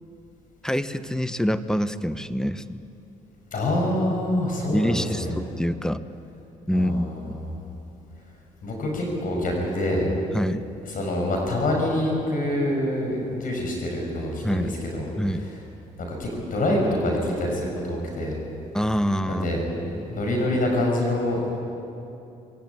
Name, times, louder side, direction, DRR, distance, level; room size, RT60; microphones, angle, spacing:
voice 1, 0.6-2.8 4.7-6.0 6.7-7.4 10.3-10.7 14.4-14.7 15.2-15.4 18.7-19.5 19.8-20.2, equal, 5° left, 12 dB, 1.1 m, -26 dB
voice 2, 3.5-5.3 6.7-7.0 8.6-10.1 10.9-14.7 14.9-15.1 16.0-18.4 19.3-19.6 20.1-21.4, left 1 dB, 55° left, 0 dB, 6.1 m, -25 dB
21.5 x 17.5 x 9.7 m, 2.9 s
hypercardioid pair, 55°, 17 cm